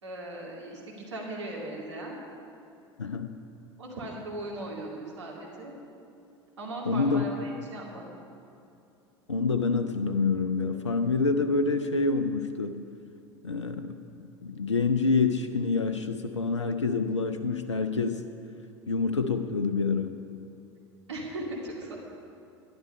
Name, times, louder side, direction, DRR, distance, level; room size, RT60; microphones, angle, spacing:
voice 1, 0.0-2.2 3.8-5.7 6.6-8.1 21.1-22.0, right 1 dB, 75° right, -2 dB, 2.3 m, -38 dB
voice 2, 3.0-3.4 6.9-7.2 9.3-13.0 13.4-14.1 14.4-18.2 18.9-20.2, left 4 dB, 85° left, 9 dB, 0.5 m, -27 dB
11.5 x 10.5 x 5.3 m, 2.7 s
figure-of-eight pair, 75°, 15 cm